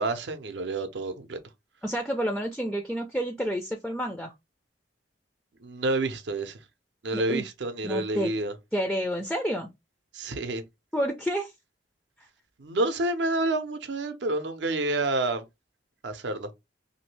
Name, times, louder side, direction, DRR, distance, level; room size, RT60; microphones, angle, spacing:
voice 1, 0.0-1.4 5.6-6.6 7.0-8.5 10.1-10.6 12.6-15.4 16.0-16.5, right 2 dB, 65° right, 0.6 m, -29 dB
voice 2, 1.8-4.3 7.1-7.4 7.8-8.3 8.7-9.7 10.9-11.5, equal, 5° left, 0.3 m, -29 dB
2.9 x 2.6 x 3.1 m
head